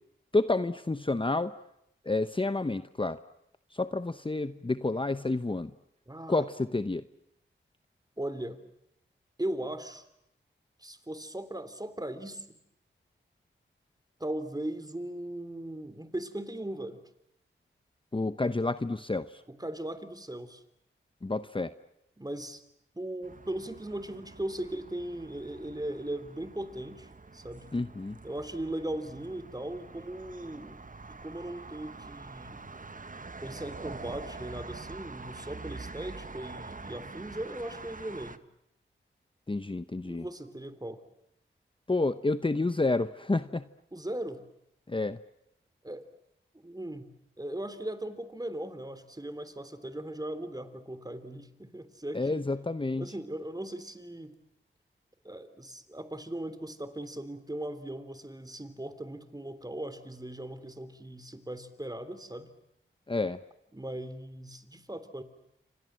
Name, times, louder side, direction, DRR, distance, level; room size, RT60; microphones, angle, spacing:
voice 1, 0.3-1.5 2.0-3.2 3.7-5.7 6.3-7.0 18.1-19.4 21.2-21.7 27.7-28.2 39.5-40.2 41.9-43.7 44.9-45.2 52.1-53.1 63.1-63.4, left 2 dB, 25° left, 12 dB, 1.0 m, -29 dB
voice 2, 6.1-6.4 8.2-8.6 9.4-10.1 10.8-12.6 14.2-17.0 19.5-20.6 22.2-22.6 22.9-27.7 28.2-30.8 31.1-32.7 33.4-38.4 40.0-41.0 43.9-44.4 45.8-46.1 46.6-52.4 53.0-54.3 55.2-62.5 63.7-65.2, right 1 dB, 20° right, 12 dB, 3.4 m, -38 dB
sound 1, 23.2-38.4, right 3 dB, 40° right, 1.4 m, -45 dB
28.5 x 25.5 x 7.7 m, 0.79 s
cardioid pair, 45°, 21 cm